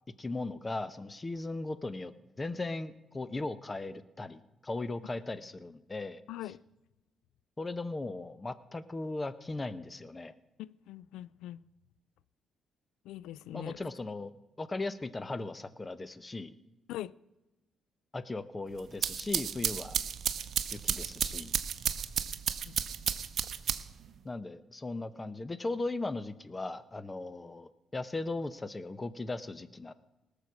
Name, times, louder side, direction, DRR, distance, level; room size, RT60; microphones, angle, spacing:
voice 1, 0.2-2.1 2.4-6.2 7.6-10.3 13.5-14.3 14.6-16.5 18.1-20.0 20.7-21.5 24.2-29.9, left 2 dB, 25° left, 0.9 m, -37 dB
voice 2, 6.3-6.6 10.6-11.6 13.1-13.8 16.9-17.1 22.7-22.8, left 14 dB, 85° left, 0.3 m, -42 dB
sound 1, 18.8-24.1, right 8 dB, 65° right, 0.7 m, -33 dB
18.5 x 6.9 x 6.2 m
supercardioid pair, 65°, 0 cm